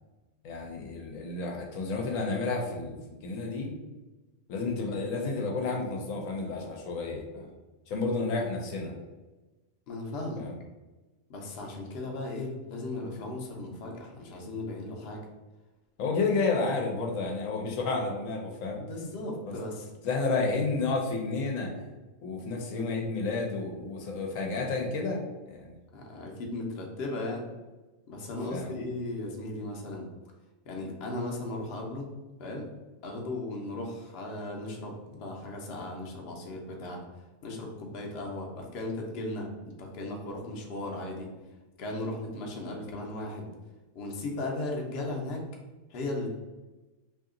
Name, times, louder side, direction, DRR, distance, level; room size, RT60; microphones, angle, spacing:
voice 1, 0.4-3.7 4.5-7.5 7.9-8.9 10.4-10.5 16.0-18.8 19.5-19.6 20.0-21.7 22.2-25.8 28.5-28.7, left 3 dB, 80° left, 1 dB, 1.1 m, -31 dB
voice 2, 9.9-10.5 11.3-15.3 18.9-19.9 25.9-27.5 28.1-30.1 30.6-32.1 32.4-32.7 33.0-37.0 37.4-39.5 39.8-41.3 41.8-43.5 43.9-45.4 45.9-46.4, left 2 dB, 60° left, 0 dB, 0.8 m, -36 dB
2.8 x 2.8 x 3.7 m, 1.2 s
omnidirectional pair, 1.3 m